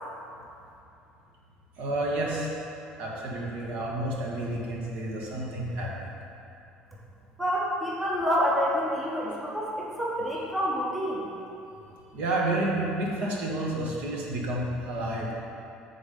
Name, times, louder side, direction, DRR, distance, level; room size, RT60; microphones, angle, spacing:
voice 1, 1.8-2.5 3.0-6.1 12.1-15.3, right 1 dB, 60° right, -3 dB, 1.3 m, -30 dB
voice 2, 7.4-11.3, equal, 5° right, -5 dB, 0.7 m, -28 dB
7.1 x 4.0 x 5.0 m, 2.7 s
cardioid pair, 165°, 3 cm